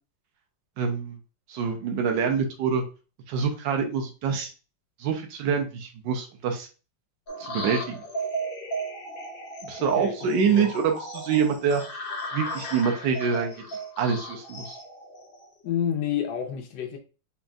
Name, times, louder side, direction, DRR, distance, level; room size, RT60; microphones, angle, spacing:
voice 1, 0.8-1.2 1.5-2.8 3.3-4.5 5.0-6.7 7.4-8.0 9.7-11.8 12.3-13.5 14.0-14.8, right 6 dB, 80° right, 1.4 m, -26 dB
sound 1, 7.3-15.7, right 1 dB, 60° left, 0.5 m, -36 dB
voice 2, 10.0-10.7 15.6-17.0, left 9 dB, 80° left, 1.3 m, -29 dB
4.2 x 3.5 x 2.3 m
omnidirectional pair, 2.0 m